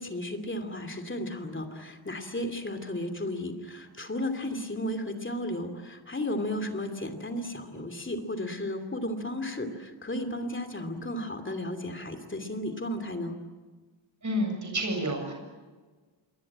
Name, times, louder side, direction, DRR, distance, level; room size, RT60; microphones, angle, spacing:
voice 1, 0.0-13.3, left 1 dB, 25° left, 6 dB, 2.8 m, -34 dB
voice 2, 14.2-15.3, equal, 40° right, 3 dB, 7.2 m, -29 dB
27.0 x 23.0 x 8.8 m, 1.3 s
wide cardioid pair, 160°, 47 cm